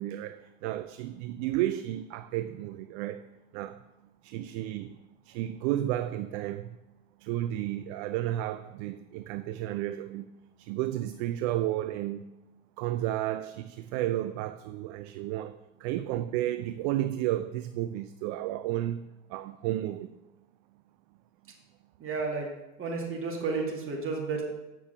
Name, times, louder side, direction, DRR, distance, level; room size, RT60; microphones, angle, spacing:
voice 1, 0.0-3.3 3.5-3.8 4.2-5.0 5.2-6.8 7.2-10.3 10.6-12.2 12.8-20.1, right 13 dB, 50° right, 0.4 m, -32 dB
voice 2, 22.0-22.5 22.8-24.4, right 4 dB, 30° right, 2.2 m, -32 dB
7.5 x 5.9 x 5.3 m
hypercardioid pair, 75°, 41 cm